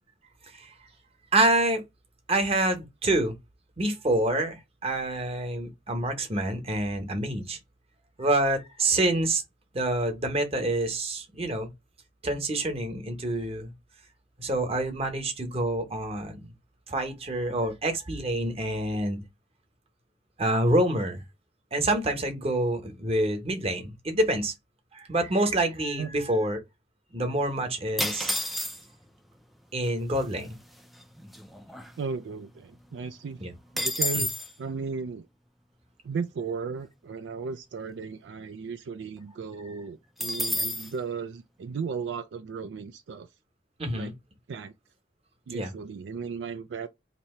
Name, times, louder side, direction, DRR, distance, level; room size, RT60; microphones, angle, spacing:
voice 1, 1.3-1.8 2.3-3.3 3.8-7.6 8.2-9.4 9.7-11.7 12.2-13.7 14.4-16.5 16.9-19.2 20.4-21.2 21.7-24.5 24.9-26.6 27.1-28.3 29.7-30.6 33.4-33.5 43.8-44.1 45.5-45.7, right 1 dB, 35° right, 1.0 m, -27 dB
sound 1, 28.0-29.1 29.9-30.0 30.2-30.5 30.9-32.4 32.7-32.8 33.1-34.5 40.2-40.9, left 1 dB, ahead, 0.4 m, -30 dB
voice 2, 32.0-33.4 33.7-35.3 36.0-43.3 43.9-44.1 44.5-44.7 45.5-46.9, right 5 dB, 70° right, 0.3 m, -35 dB
2.9 x 2.7 x 4.3 m
head